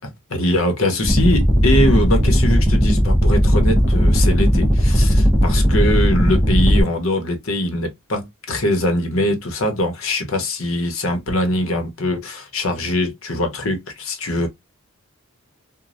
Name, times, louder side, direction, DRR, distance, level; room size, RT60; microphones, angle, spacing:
voice 1, 0.3-14.5, left 1 dB, 70° left, 0.9 m, -22 dB
sound 1, 1.0-6.8, equal, 15° right, 0.7 m, -16 dB
3.1 x 2.2 x 2.4 m
head